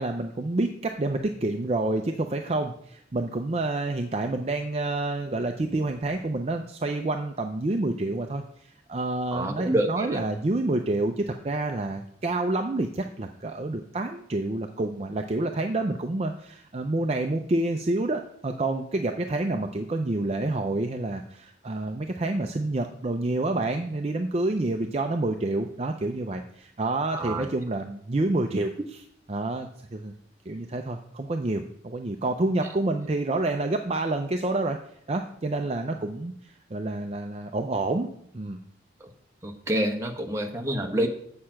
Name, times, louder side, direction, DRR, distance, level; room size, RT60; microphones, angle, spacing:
voice 1, 0.0-29.0 29.3-30.1 30.5-34.8 35.1-38.1 38.3-38.6, right 2 dB, 35° right, 4 dB, 0.5 m, -28 dB
voice 2, 9.3-10.2 27.1-27.5 39.4-41.1, right 1 dB, 15° right, 3 dB, 0.9 m, -27 dB
7.6 x 6.6 x 5.7 m, 0.68 s
head